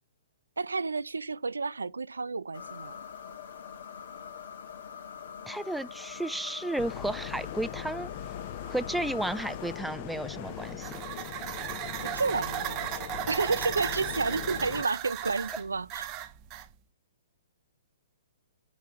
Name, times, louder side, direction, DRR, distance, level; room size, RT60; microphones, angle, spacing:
voice 1, 0.6-3.0 12.0-16.1, right 4 dB, 80° right, 0.4 m, -31 dB
sound 1, 2.5-9.8, left 7 dB, 60° left, 1.0 m, -43 dB
voice 2, 5.5-8.1 8.7-11.0, right 1 dB, ahead, 0.3 m, -33 dB
sound 2, 6.8-14.8, left 10 dB, 45° left, 0.6 m, -40 dB
sound 3, 10.4-16.7, right 12 dB, 30° right, 0.8 m, -36 dB
5.8 x 4.4 x 4.8 m
figure-of-eight pair, 120°, 0 cm